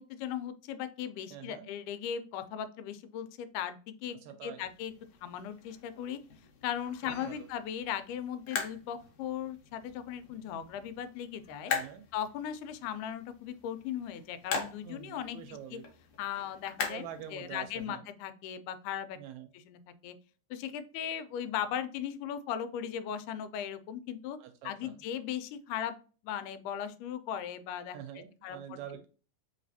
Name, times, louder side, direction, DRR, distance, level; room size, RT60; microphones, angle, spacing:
voice 1, 0.0-4.2 4.4-4.9 5.2-6.2 6.6-11.7 12.1-15.8 16.2-17.1 17.3-19.2 19.5-20.2 20.5-24.4 24.6-26.0 26.2-28.0 28.4-28.8, left 9 dB, 90° left, 11 dB, 2.1 m, -38 dB
voice 2, 1.3-1.7 4.1-4.7 7.0-7.5 11.7-12.0 14.8-15.8 16.9-18.0 19.1-19.5 24.4-25.0 27.9-29.1, right 9 dB, 80° right, 8 dB, 1.7 m, -46 dB
sound 1, 4.6-17.9, left 6 dB, 65° left, 1.6 m, -42 dB
4.0 x 3.7 x 2.6 m, 0.38 s
omnidirectional pair, 3.5 m